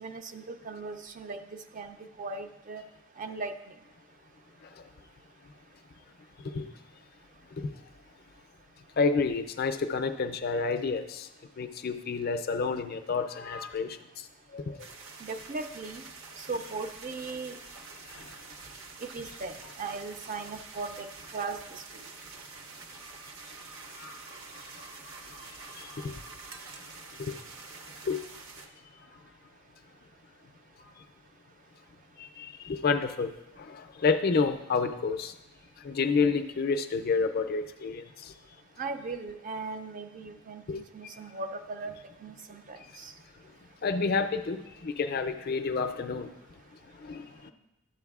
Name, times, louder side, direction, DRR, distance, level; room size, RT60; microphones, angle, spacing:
voice 1, 0.0-2.8 3.2-3.5 15.2-16.0 16.4-17.6 19.0-21.1 21.3-21.8 38.8-41.9 42.2-43.1, right 3 dB, 35° right, 8 dB, 0.4 m, -38 dB
voice 2, 9.0-11.3 11.6-14.3 14.5-14.8 18.1-18.3 24.0-24.2 25.7-26.1 27.2-27.4 28.0-28.2 32.2-33.3 33.6-35.3 35.8-38.3 40.7-40.8 42.8-42.9 43.8-46.3 47.0-47.5, left 4 dB, 45° left, 7 dB, 0.4 m, -29 dB
sound 1, 14.8-28.7, right 3 dB, 60° right, 0.7 m, -47 dB
11.5 x 7.7 x 2.3 m, 0.94 s
head